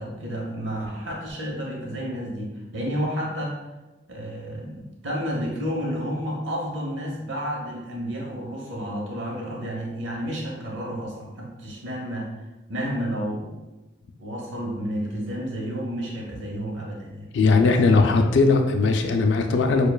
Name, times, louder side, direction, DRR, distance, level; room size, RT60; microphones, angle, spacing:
voice 1, 0.0-3.6 4.1-12.4 12.7-13.6 14.2-17.3 17.6-17.8, equal, 75° right, -2 dB, 0.9 m, -31 dB
voice 2, 17.3-19.9, left 3 dB, 70° left, 4 dB, 0.4 m, -19 dB
6.7 x 2.3 x 2.3 m, 1.1 s
head